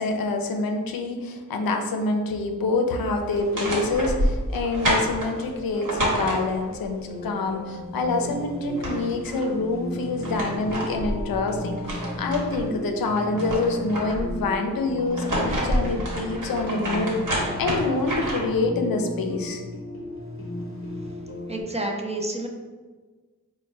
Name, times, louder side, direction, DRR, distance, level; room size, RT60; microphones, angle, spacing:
voice 1, 0.0-19.6, left 3 dB, 85° left, 4 dB, 0.5 m, -26 dB
sound 1, 2.6-21.6, left 1 dB, 40° left, 0.9 m, -36 dB
paper stir, 3.3-6.9 8.3-8.4 8.6-9.5 10.0-12.7 13.1-14.4 15.0-18.6, equal, 60° right, 1.1 m, -28 dB
voice 2, 21.5-22.5, right 1 dB, 20° right, 1 dB, 0.4 m, -29 dB
4.2 x 2.2 x 3.2 m, 1.4 s
wide cardioid pair, 85°, 34 cm